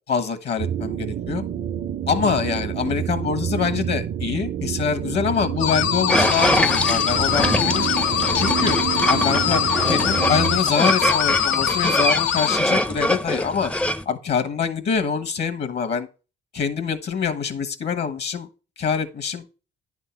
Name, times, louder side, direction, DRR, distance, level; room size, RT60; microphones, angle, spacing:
voice 1, 0.1-1.4 2.1-7.9 8.3-8.8 9.0-13.7 14.0-16.1 16.5-18.5 18.8-19.4, left 6 dB, 60° left, 1.2 m, -25 dB
sound 1, 0.6-10.6, right 9 dB, 50° right, 0.5 m, -28 dB
sound 2, 5.6-12.6, left 10 dB, 75° left, 0.6 m, -23 dB
sound 3, 6.1-14.0, equal, 5° left, 0.5 m, -24 dB
10.0 x 3.7 x 5.7 m
cardioid pair, 90°, 20 cm